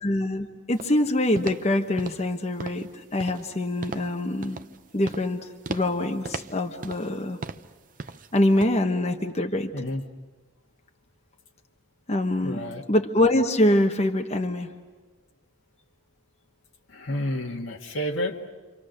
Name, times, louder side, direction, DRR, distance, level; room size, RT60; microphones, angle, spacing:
voice 1, 0.0-4.6 4.9-7.4 8.3-9.7 12.1-12.6 12.9-14.7, left 1 dB, 30° left, 4 dB, 1.1 m, -24 dB
sound 1, 0.8-1.0 1.4-1.7 2.0-2.3 2.6-2.9 3.2-3.5 3.8-4.1 4.4-4.8 5.0-5.3 5.6-6.0 6.2-7.2 7.4-7.7 8.0-8.3 8.6-8.7, right 3 dB, 40° right, 0.7 m, -37 dB
voice 2, 12.4-12.8 16.9-18.5, left 1 dB, 75° left, 1 dB, 1.8 m, -30 dB
29.5 x 25.0 x 6.6 m, 1.3 s
head